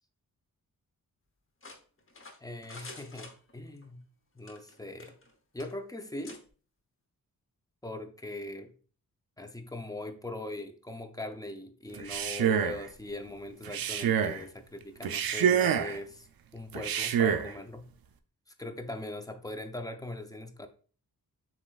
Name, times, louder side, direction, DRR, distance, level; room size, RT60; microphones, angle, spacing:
sound 1, 1.6-3.9 4.4-5.3 5.6-5.7 6.2-6.4, left 3 dB, 35° left, 0.9 m, -48 dB
voice 1, 2.4-4.0 4.4-5.1 5.5-6.4 7.8-8.7 9.4-16.3 16.5-17.9 18.6-20.7, left 2 dB, 10° left, 7 dB, 0.5 m, -41 dB
Male speech man speaking, 11.9-12.8 13.6-14.4 15.0-16.0 16.7-17.5, right 8 dB, 75° right, 0.5 m, -27 dB
7.2 x 3.0 x 2.3 m, 0.40 s
wide cardioid pair, 90°, 36 cm